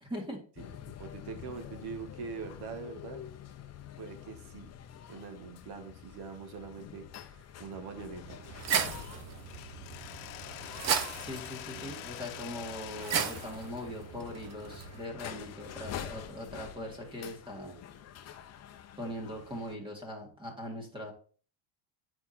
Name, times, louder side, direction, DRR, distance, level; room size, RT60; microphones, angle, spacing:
voice 1, 0.0-0.4 11.2-17.8 19.0-21.1, left 1 dB, 10° right, 1 dB, 2.0 m, -41 dB
sound 1, 0.6-19.7, left 9 dB, 35° left, 0.7 m, -47 dB
voice 2, 0.6-3.3 4.0-4.7 5.1-8.4 11.7-12.0 15.6-16.3 17.6-18.1, right 5 dB, 50° right, 7 dB, 1.7 m, -44 dB
sound 2, 8.2-15.0, right 7 dB, 35° right, 0.8 m, -36 dB
Mechanisms, 9.4-15.3, left 13 dB, 75° left, 0.9 m, -46 dB
9.4 x 4.9 x 4.3 m, 0.42 s
cardioid pair, 155°, 48 cm